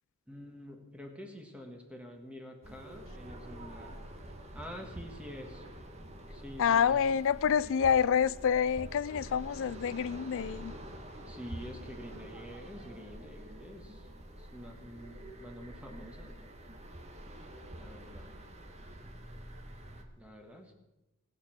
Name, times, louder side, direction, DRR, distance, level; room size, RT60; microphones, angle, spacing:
voice 1, 0.3-4.0 4.5-5.6 6.3-7.0 11.3-14.0 14.4-16.5 17.8-18.4 20.2-20.7, equal, 5° right, 1.5 m, -47 dB
sound 1, 2.6-20.0, right 1 dB, 30° right, 1.4 m, -47 dB
voice 2, 6.6-10.7, left 7 dB, 65° left, 0.4 m, -27 dB
19.0 x 6.8 x 5.9 m
head